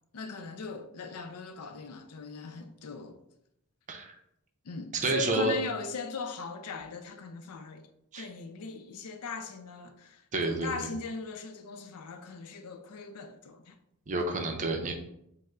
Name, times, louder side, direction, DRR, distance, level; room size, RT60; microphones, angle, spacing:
voice 1, 0.1-3.2 4.6-7.9 8.2-13.8, left 4 dB, 85° left, 0.5 m, -39 dB
voice 2, 5.0-5.6 8.1-8.3 10.3-10.9 14.1-14.9, right 2 dB, 35° right, 0.5 m, -29 dB
5.3 x 2.1 x 3.6 m
head